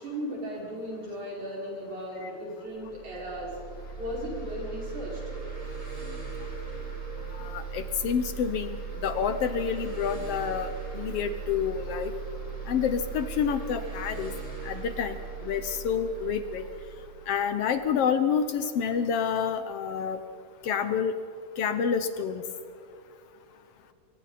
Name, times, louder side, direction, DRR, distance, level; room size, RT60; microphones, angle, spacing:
voice 1, 0.0-3.6 4.0-5.2, equal, 75° right, -4 dB, 6.9 m, -36 dB
sound 1, 2.8-18.3, right 5 dB, 10° right, 4.2 m, -38 dB
voice 2, 7.4-8.8 9.0-10.7 10.9-12.1 12.7-14.3 14.6-15.2 15.4-16.6 17.3-20.2 20.6-21.2 21.6-22.4, left 7 dB, 70° left, 9 dB, 1.6 m, -28 dB
28.5 x 22.5 x 4.2 m, 2.4 s
omnidirectional pair, 3.4 m